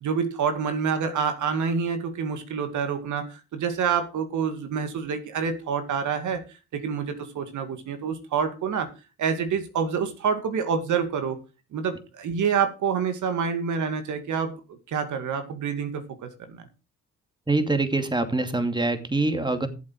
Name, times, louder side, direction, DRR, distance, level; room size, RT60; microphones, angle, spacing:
voice 1, 0.0-6.4 6.7-8.9 9.2-11.4 11.7-14.5 14.9-16.7, right 6 dB, 75° right, 7 dB, 2.3 m, -27 dB
voice 2, 17.5-19.7, right 2 dB, 15° right, 8 dB, 2.5 m, -24 dB
14.0 x 7.7 x 4.8 m, 0.30 s
supercardioid pair, 65°, 30 cm